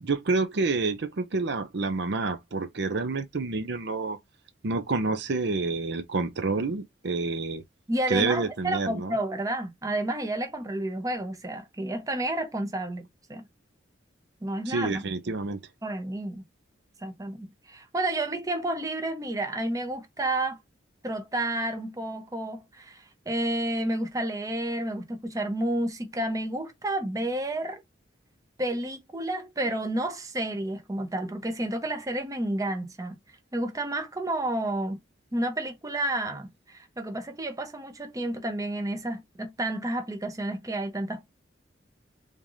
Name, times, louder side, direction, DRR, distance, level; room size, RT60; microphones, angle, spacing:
voice 1, 0.0-4.2 4.6-7.6 8.1-9.1 14.7-15.6, right 3 dB, 65° right, 0.6 m, -28 dB
voice 2, 7.9-13.5 14.4-15.0 15.8-16.4 17.0-20.6 21.0-27.8 28.6-33.2 33.5-35.0 35.3-41.2, right 1 dB, 20° right, 0.7 m, -30 dB
3.6 x 3.3 x 2.6 m
head